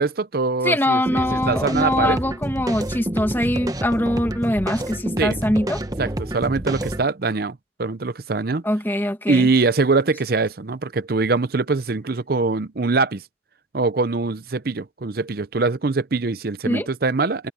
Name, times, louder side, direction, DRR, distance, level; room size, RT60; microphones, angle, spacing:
voice 1, 0.0-2.2 5.2-5.4 6.0-8.6 9.3-13.2 13.7-17.5, right 3 dB, 50° right, 0.6 m, -23 dB
voice 2, 0.6-5.8 8.6-9.5 16.7-16.9, left 1 dB, 10° left, 2.1 m, -22 dB
sound 1, 1.1-7.0, right 1 dB, 20° right, 1.0 m, -28 dB
head